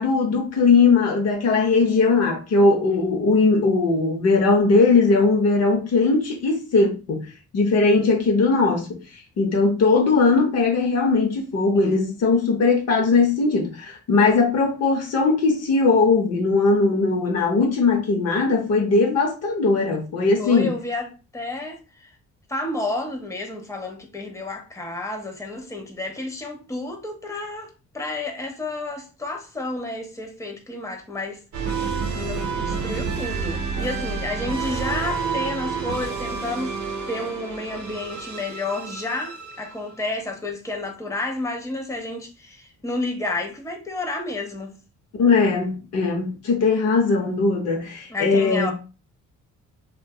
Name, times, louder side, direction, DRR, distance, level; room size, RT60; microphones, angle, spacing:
voice 1, 0.0-7.3 7.5-9.0 9.4-20.7 45.2-48.7, left 3 dB, 55° left, 0.7 m, -19 dB
voice 2, 11.6-12.0 20.4-22.1 22.5-36.7 37.1-44.8 48.1-48.7, left 2 dB, 10° left, 0.6 m, -31 dB
sound 1, 31.5-39.9, right 5 dB, 70° right, 0.7 m, -29 dB
2.6 x 2.2 x 2.2 m
cardioid pair, 90°, 30 cm